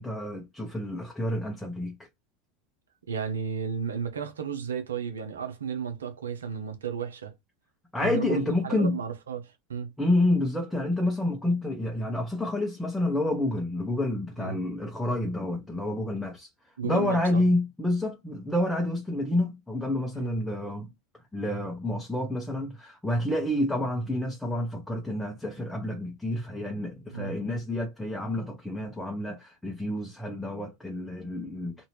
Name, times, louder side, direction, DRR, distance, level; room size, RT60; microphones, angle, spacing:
voice 1, 0.0-1.9 7.9-9.0 10.0-16.5 16.8-20.9 21.3-31.9, left 1 dB, 5° left, 0.8 m, -29 dB
voice 2, 3.1-7.3 8.0-9.9 14.4-14.6 16.8-17.4 20.1-20.3 27.1-27.3, right 7 dB, 80° right, 0.7 m, -33 dB
2.8 x 2.5 x 3.0 m
hypercardioid pair, 80°, 0 cm